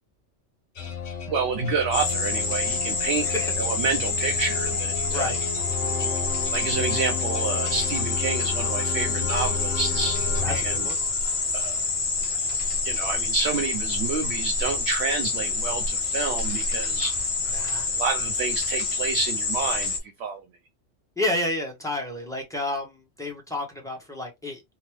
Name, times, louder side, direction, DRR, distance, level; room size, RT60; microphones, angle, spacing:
sound 1, 0.8-11.4, left 6 dB, 75° left, 1.2 m, -32 dB
voice 1, 1.3-3.3 3.6-5.4 6.5-10.2 10.5-10.9 11.5-11.8 12.8-17.2 17.9-20.4, right 4 dB, 65° right, 0.8 m, -29 dB
sound 2, 1.9-20.0, left 4 dB, 40° left, 0.5 m, -27 dB
voice 2, 10.4-11.0 17.5-17.9 21.2-24.6, left 1 dB, 5° left, 0.9 m, -30 dB
3.5 x 2.0 x 3.1 m
omnidirectional pair, 1.3 m